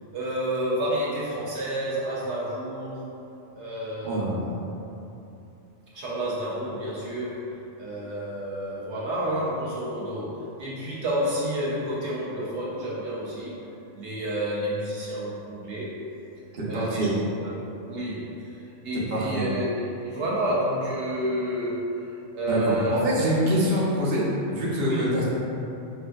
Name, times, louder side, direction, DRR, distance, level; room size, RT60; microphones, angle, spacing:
voice 1, 0.1-3.1 3.5-4.6 5.9-13.6 13.9-16.0 16.7-17.1 17.4-17.5 17.8-18.6 18.8-19.7 20.0-21.8 22.3-23.0 24.9-25.2, right 1 dB, 70° right, -6 dB, 0.9 m, -30 dB
voice 2, 4.0-4.5 16.5-17.1 19.1-19.5 22.5-25.2, right 1 dB, 45° right, -7 dB, 0.8 m, -25 dB
5.3 x 2.5 x 2.3 m, 2.8 s
omnidirectional pair, 1.2 m